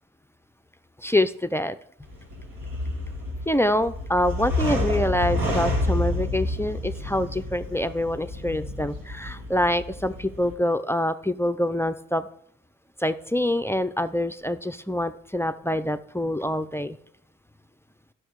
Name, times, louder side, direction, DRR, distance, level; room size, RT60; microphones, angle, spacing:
voice 1, 1.0-1.8 3.5-12.3 13.0-17.0, left 1 dB, 10° left, 12 dB, 0.4 m, -25 dB
sound 1, 2.0-10.5, left 1 dB, 85° right, 3.0 m, -29 dB
11.0 x 6.4 x 4.7 m, 0.69 s
cardioid pair, 85°, 33 cm